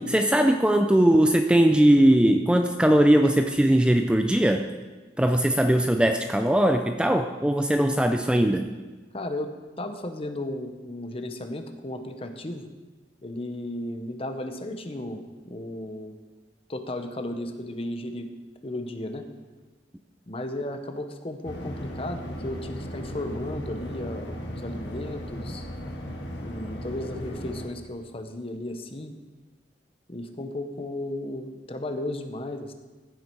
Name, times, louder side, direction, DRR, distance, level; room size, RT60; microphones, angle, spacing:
voice 1, 0.0-4.7 5.2-8.7, right 1 dB, 5° right, 5 dB, 0.4 m, -20 dB
voice 2, 9.1-12.7 13.2-16.1 16.7-18.3 18.6-19.3 20.3-25.7 26.4-29.2 30.1-32.7, left 1 dB, 30° left, 7 dB, 0.9 m, -34 dB
sound 1, 21.4-27.7, equal, 70° left, 1.8 m, -36 dB
15.0 x 7.6 x 4.6 m, 1.3 s
head